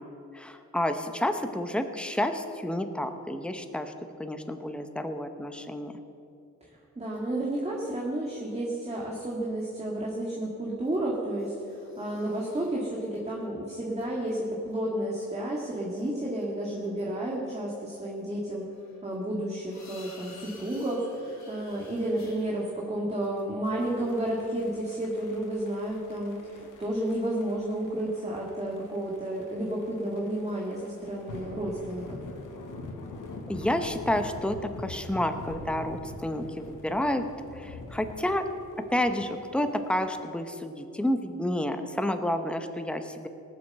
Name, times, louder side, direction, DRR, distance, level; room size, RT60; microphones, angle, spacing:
voice 1, 0.3-3.9 4.2-5.9 33.5-37.2 37.6-38.5 38.8-43.3, left 1 dB, 5° left, 7 dB, 0.9 m, -30 dB
voice 2, 6.6-18.7 19.0-32.2 41.7-41.9, right 1 dB, 20° right, -3 dB, 2.0 m, -31 dB
sound 1, 8.9-9.5 11.3-14.2 18.6-23.0 26.7-26.8, left 3 dB, 60° left, 3.1 m, -54 dB
sound 2, 23.8-40.1, left 2 dB, 80° left, 1.7 m, -44 dB
18.5 x 7.4 x 6.6 m, 2.8 s
cardioid pair, 95°, 31 cm